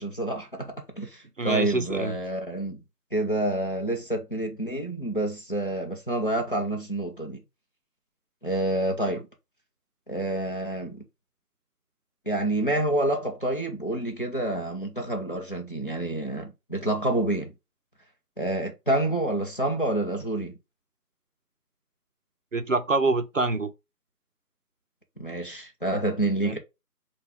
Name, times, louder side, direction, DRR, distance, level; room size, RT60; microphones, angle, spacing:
voice 1, 0.0-2.8 3.1-7.4 8.4-9.3 10.1-11.1 12.3-17.5 18.4-20.5 25.2-26.6, right 1 dB, 35° left, 0.7 m, -28 dB
voice 2, 1.4-2.2 22.5-23.7 26.4-26.6, right 3 dB, 55° right, 0.5 m, -26 dB
5.3 x 2.3 x 3.3 m
figure-of-eight pair, 170°, 48 cm